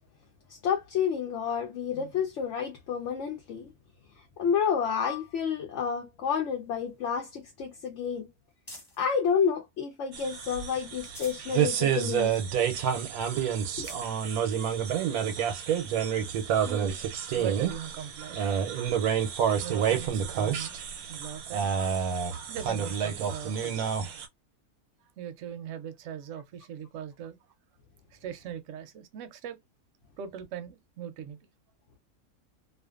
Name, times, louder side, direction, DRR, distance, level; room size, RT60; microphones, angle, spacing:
voice 1, 0.5-3.7 4.4-8.3 9.0-12.4 13.3-13.5, left 7 dB, 65° left, 0.8 m, -30 dB
sound 1, 6.5-9.1 9.7-10.4 10.8-11.5 12.0-12.1 12.4-12.5 13.1-13.2 13.6-14.1 14.9-15.0 16.8-16.9, left 1 dB, 20° left, 1.1 m, -51 dB
sound 2, 10.1-24.3, right 8 dB, 90° right, 1.1 m, -29 dB
voice 2, 16.6-17.1 17.3-18.4 19.6-20.8 21.1-21.7 22.5-23.9 25.2-27.4 28.1-29.6 30.2-31.4, right 9 dB, 65° right, 0.8 m, -40 dB
2.5 x 2.4 x 2.4 m
omnidirectional pair, 1.5 m